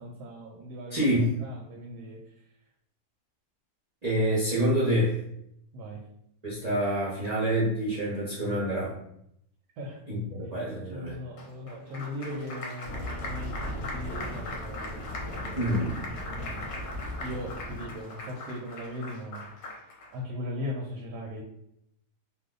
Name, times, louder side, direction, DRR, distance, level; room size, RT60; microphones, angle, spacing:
voice 1, 0.0-1.1 1.4-2.2 5.7-6.1 9.8-10.0 10.9-16.7 17.2-19.5 20.1-21.4, left 1 dB, 80° right, -1 dB, 1.1 m, -39 dB
voice 2, 0.9-1.3 4.0-5.2 6.4-9.0 10.1-11.2 15.6-15.9, equal, 45° right, -7 dB, 0.5 m, -27 dB
Applause, 11.4-20.1, left 2 dB, 55° left, 0.8 m, -41 dB
sound 1, 12.8-17.9, left 1 dB, 35° left, 0.5 m, -38 dB
2.7 x 2.2 x 3.7 m, 0.75 s
omnidirectional pair, 1.7 m